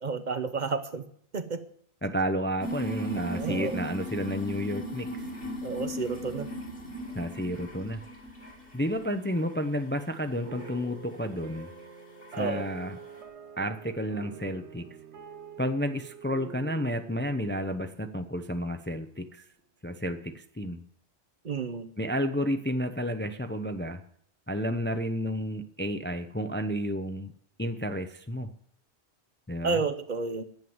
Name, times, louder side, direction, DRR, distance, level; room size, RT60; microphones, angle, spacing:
voice 1, 0.0-1.0 1.3-1.6 3.1-3.8 5.6-6.5 12.4-12.7 21.4-21.9 29.6-30.4, right 4 dB, 45° right, 11 dB, 0.9 m, -31 dB
voice 2, 2.0-5.3 7.1-8.0 8.7-11.7 12.4-13.0 13.6-14.9 15.6-19.4 19.8-20.8 22.0-24.0 24.5-27.3 27.6-28.5 29.5-29.8, equal, 15° left, 8 dB, 0.6 m, -31 dB
sound 1, 2.6-9.0 9.3-9.9 10.6-10.7 11.6-11.7 12.2-12.4, right 1 dB, 55° left, 2.5 m, -37 dB
sound 2, 10.4-19.0, right 6 dB, 90° right, 1.3 m, -46 dB
11.0 x 9.4 x 7.9 m, 0.64 s
omnidirectional pair, 1.1 m